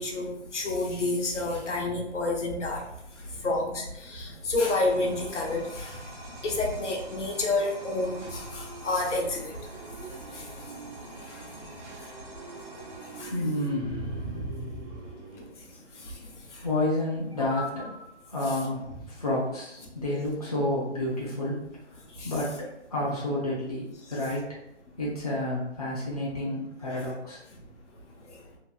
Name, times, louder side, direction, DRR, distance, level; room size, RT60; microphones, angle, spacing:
voice 1, 0.0-2.9 3.3-6.0 6.4-9.5 10.3-10.7 11.3-11.4 13.2-13.3 16.0-16.1 16.5-16.7 18.5-18.6 22.2-22.3 26.9-27.1 28.3-28.4, left 2 dB, 80° left, 0 dB, 0.8 m, -29 dB
sound 1, 4.6-13.2, right 1 dB, 30° right, 0.6 m, -47 dB
sound 2, 7.8-15.5, right 4 dB, 75° right, 0.8 m, -46 dB
voice 2, 12.0-12.5 13.3-15.0 16.6-24.6 25.0-27.4, left 1 dB, 35° left, -7 dB, 0.4 m, -31 dB
2.7 x 2.0 x 2.3 m, 0.82 s
hypercardioid pair, 175°, 35 cm